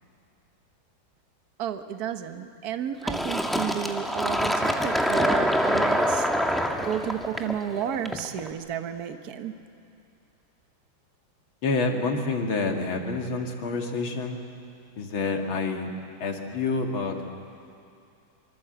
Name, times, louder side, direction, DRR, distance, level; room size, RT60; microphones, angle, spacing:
voice 1, 1.6-6.3 6.5-9.5, right 9 dB, 55° right, 8 dB, 1.5 m, -32 dB
Fill (with liquid), 3.1-8.5, equal, ahead, 1.2 m, -25 dB
voice 2, 11.6-14.4 15.0-15.9 16.2-17.2, left 3 dB, 85° left, 2 dB, 2.9 m, -28 dB
25.5 x 24.5 x 8.0 m, 2.6 s
omnidirectional pair, 2.2 m